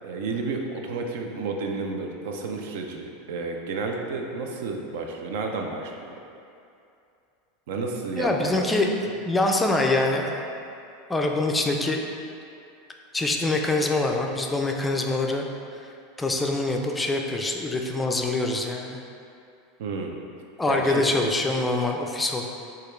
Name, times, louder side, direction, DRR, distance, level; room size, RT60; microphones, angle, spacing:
voice 1, 0.0-6.2 7.7-8.7 19.8-20.2 20.7-21.0, right 3 dB, 75° right, 2 dB, 0.5 m, -31 dB
voice 2, 8.2-8.9 9.2-10.4 11.1-12.0 13.1-15.5 16.2-19.0 20.6-22.5, left 2 dB, 10° left, 1 dB, 0.4 m, -24 dB
5.0 x 2.4 x 4.4 m, 2.6 s
supercardioid pair, 140°, 0 cm